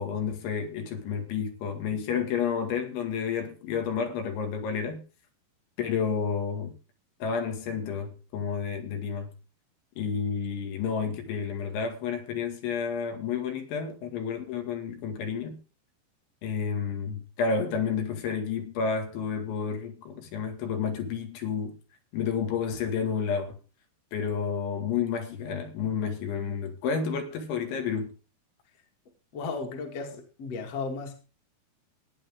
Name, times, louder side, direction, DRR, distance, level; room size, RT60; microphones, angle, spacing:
voice 1, 0.0-5.0 5.8-6.7 7.2-9.3 10.0-15.6 16.4-21.8 22.1-23.6 24.1-28.1, left 6 dB, 70° left, 4.4 m, -30 dB
voice 2, 29.3-31.2, left 4 dB, 40° left, 2.7 m, -35 dB
17.5 x 9.8 x 3.7 m
omnidirectional pair, 5.6 m